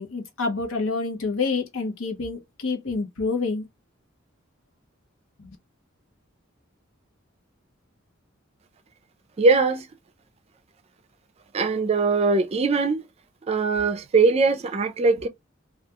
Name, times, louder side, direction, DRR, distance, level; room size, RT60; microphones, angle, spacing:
voice 1, 0.0-3.7 5.4-5.5, left 4 dB, 90° left, 0.8 m, -28 dB
voice 2, 9.4-9.9 11.5-13.0 13.5-15.3, right 4 dB, 30° right, 0.4 m, -21 dB
2.3 x 2.2 x 2.8 m
head